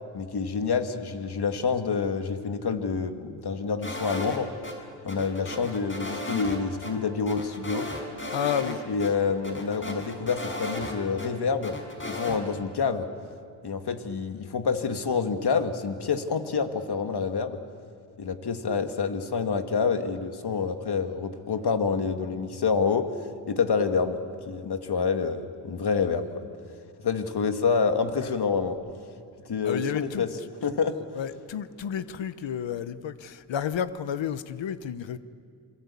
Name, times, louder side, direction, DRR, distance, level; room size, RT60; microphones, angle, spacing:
voice 1, 0.1-4.5 5.0-7.9 8.9-11.8 12.1-13.1 13.6-17.6 18.2-23.1 23.5-26.5 27.0-28.8 29.5-30.3 30.6-31.0, left 5 dB, 60° left, 2.0 m, -27 dB
sound 1, 3.8-4.7 5.1-6.6 6.8-6.9 7.3-8.7 9.0-9.1 9.4-11.3 11.6-12.4, left 1 dB, 25° left, 5.6 m, -35 dB
voice 2, 8.3-8.8 28.2-28.3 29.6-30.5 31.1-35.2, left 8 dB, 85° left, 1.1 m, -31 dB
28.0 x 22.0 x 8.5 m
cardioid pair, 60°, 44 cm